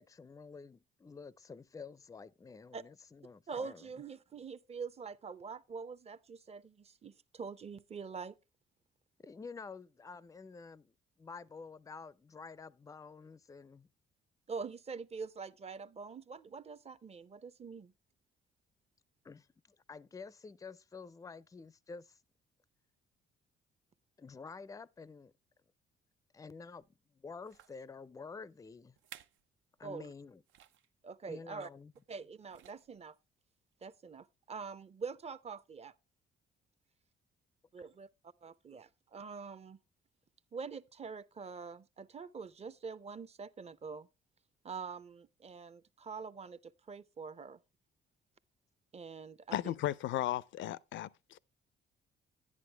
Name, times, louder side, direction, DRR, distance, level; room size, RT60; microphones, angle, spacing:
voice 1, 0.0-3.9 9.2-10.9 11.2-13.9 19.2-22.2 24.2-25.3 26.3-29.0 29.8-30.4 31.2-31.9, left 4 dB, 15° left, 0.4 m, -49 dB
voice 2, 3.5-8.4 14.5-17.9 29.8-30.1 31.0-31.7 32.1-33.2 33.8-35.9 37.7-38.1 38.4-39.8 40.5-44.1 44.6-47.6 48.9-49.7, right 5 dB, 30° right, 0.6 m, -45 dB
sound 1, 26.7-26.9 27.4-27.8 28.5-28.6 28.9-29.5 29.8-29.9 30.5-30.9 31.9-32.2 32.5-33.0 33.7-33.8, right 10 dB, 75° right, 0.6 m, -57 dB
voice 3, 49.5-51.4, left 13 dB, 75° left, 0.5 m, -35 dB
11.0 x 9.7 x 3.3 m
cardioid pair, 90°, 20 cm